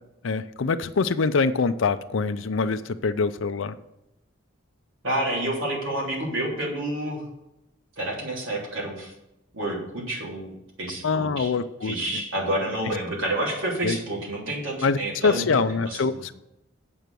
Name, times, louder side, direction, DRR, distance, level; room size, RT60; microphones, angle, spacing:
voice 1, 0.2-3.7 11.0-12.2 13.8-14.0 14.8-15.0 15.2-16.3, left 4 dB, 75° left, 10 dB, 0.5 m, -24 dB
voice 2, 5.0-7.2 8.0-9.1 9.5-10.5 10.8-11.5 11.8-15.5 15.9-16.2, right 1 dB, 80° right, -2 dB, 3.3 m, -29 dB
7.8 x 6.1 x 6.8 m, 0.87 s
head